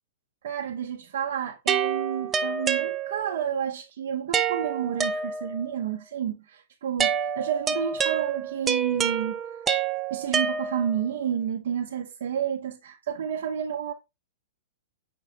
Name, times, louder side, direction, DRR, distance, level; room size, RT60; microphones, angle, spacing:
voice 1, 0.4-9.7 10.1-13.9, right 9 dB, 70° right, 0.6 m, -30 dB
sound 1, 1.7-3.5 4.3-5.8 7.0-11.1, right 7 dB, 20° right, 0.4 m, -28 dB
5.8 x 2.7 x 3.3 m
hypercardioid pair, 140°, 0 cm